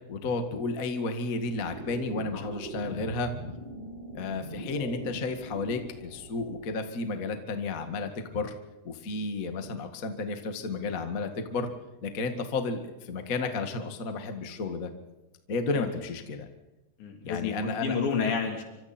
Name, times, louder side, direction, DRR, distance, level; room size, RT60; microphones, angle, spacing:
voice 1, 0.1-3.3 4.1-8.5 8.8-11.7 12.0-14.9 15.5-16.5 17.2-18.0, left 3 dB, 50° left, 6 dB, 1.0 m, -32 dB
sound 1, 1.5-6.6, right 1 dB, 70° right, 9.0 m, -41 dB
voice 2, 17.0-18.6, left 6 dB, 80° left, 2 dB, 5.6 m, -30 dB
26.5 x 25.5 x 4.4 m, 1.1 s
omnidirectional pair, 4.9 m